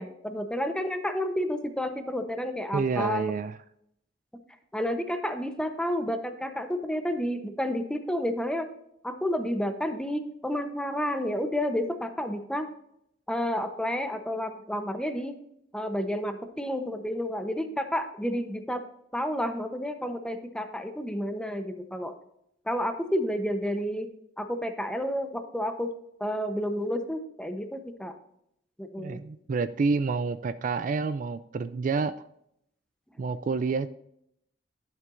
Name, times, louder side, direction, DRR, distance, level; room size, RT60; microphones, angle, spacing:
voice 1, 0.0-3.2 4.7-8.7 9.0-12.7 13.3-15.4 15.7-18.8 19.1-22.1 22.7-24.1 24.4-25.9 26.2-28.1 28.8-29.2, equal, 5° left, 7 dB, 0.8 m, -30 dB
voice 2, 2.7-3.5 29.0-32.1 33.2-33.9, right 4 dB, 45° right, 13 dB, 0.3 m, -28 dB
11.5 x 7.5 x 2.5 m, 0.75 s
head